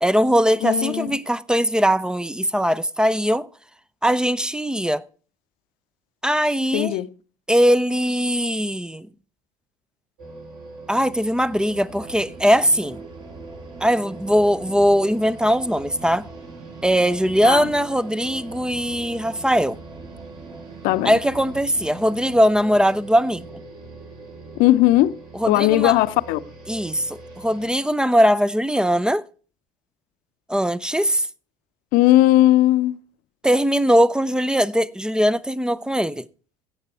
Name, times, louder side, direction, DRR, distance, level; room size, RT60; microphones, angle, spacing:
voice 1, 0.0-3.5 4.0-5.0 6.2-7.0 7.5-9.1 10.9-13.0 13.8-16.3 16.8-19.8 21.0-23.5 25.4-25.9 26.7-29.2 30.5-31.3 33.4-36.3, equal, 5° right, 0.5 m, -20 dB
voice 2, 0.6-1.1 6.7-7.1 17.4-17.7 20.8-21.2 24.6-25.2 25.5-26.4 31.9-33.0, left 15 dB, 55° left, 0.7 m, -17 dB
sound 1, 10.2-27.7, right 3 dB, 55° right, 4.4 m, -42 dB
sound 2, 11.4-23.0, right 4 dB, 25° right, 1.4 m, -44 dB
16.0 x 7.4 x 4.5 m
figure-of-eight pair, 60°, 18 cm